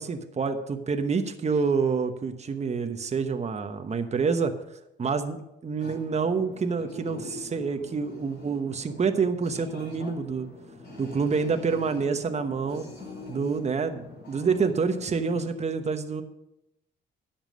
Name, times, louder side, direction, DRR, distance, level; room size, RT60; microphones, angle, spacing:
voice 1, 0.0-4.5 5.0-10.5 11.0-12.9 13.3-16.2, right 5 dB, 35° right, 7 dB, 1.1 m, -27 dB
sound 1, 5.8-15.5, left 2 dB, 65° left, 4.7 m, -44 dB
11.0 x 7.3 x 6.3 m, 0.87 s
cardioid pair, 90°, 20 cm